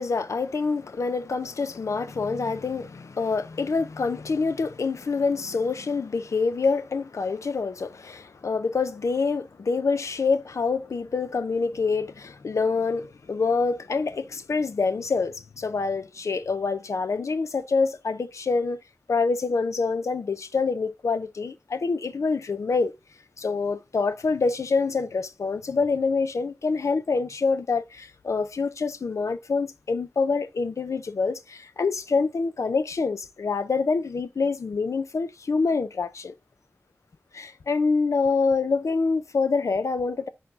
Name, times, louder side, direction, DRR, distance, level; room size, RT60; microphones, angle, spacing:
voice 1, 0.0-18.8 19.1-22.9 23.4-36.3 37.3-40.3, left 4 dB, 90° left, 0.5 m, -26 dB
6.7 x 4.2 x 3.6 m
wide cardioid pair, 75°, 5 cm